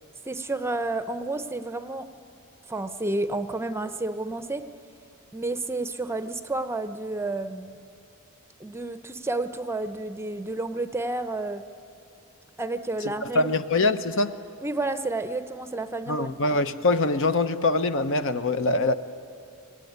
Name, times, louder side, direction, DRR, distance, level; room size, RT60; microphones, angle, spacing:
voice 1, 0.3-2.1 2.7-4.7 5.3-7.8 8.6-11.6 12.6-13.6 14.6-16.3, right 2 dB, 10° right, 0.6 m, -30 dB
voice 2, 13.2-14.3 16.1-18.9, left 2 dB, 60° left, 0.9 m, -23 dB
24.0 x 19.0 x 9.5 m
head